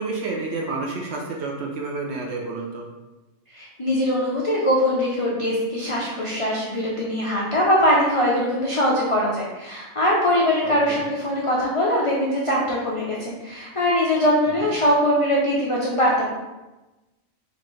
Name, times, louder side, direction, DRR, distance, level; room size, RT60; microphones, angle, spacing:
voice 1, 0.0-2.9 10.6-11.0 14.6-14.7, right 3 dB, 65° right, 0 dB, 0.8 m, -30 dB
voice 2, 3.5-16.3, equal, 60° left, -5 dB, 0.3 m, -22 dB
4.2 x 2.5 x 3.1 m, 1.1 s
omnidirectional pair, 1.4 m